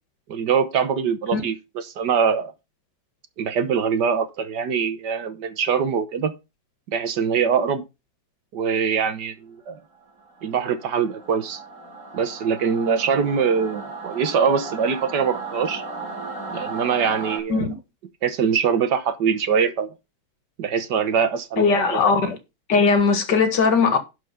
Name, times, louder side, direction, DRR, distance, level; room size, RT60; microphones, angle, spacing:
voice 1, 0.3-2.5 3.4-6.3 6.9-7.8 8.5-9.8 10.4-11.6 12.1-15.8 16.5-17.6 18.2-19.9 20.6-22.0, right 6 dB, 65° right, 1.6 m, -23 dB
Singing / Musical instrument, 10.2-17.4, right 3 dB, 40° right, 3.5 m, -35 dB
voice 2, 21.6-22.4 22.7-24.0, left 4 dB, 65° left, 2.0 m, -19 dB
11.5 x 4.7 x 5.8 m
omnidirectional pair, 2.1 m